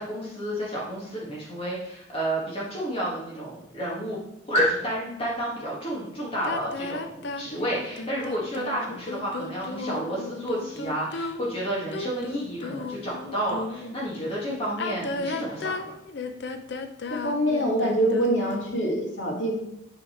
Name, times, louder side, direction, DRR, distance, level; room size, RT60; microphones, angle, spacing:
voice 1, 0.0-4.2 4.5-15.9, equal, 30° left, -5 dB, 1.7 m, -30 dB
sound 1, 6.4-14.0 14.7-18.7, left 3 dB, 65° left, 0.6 m, -34 dB
voice 2, 17.1-19.6, right 1 dB, 90° left, 0 dB, 1.8 m, -24 dB
8.5 x 4.0 x 4.3 m, 0.88 s
head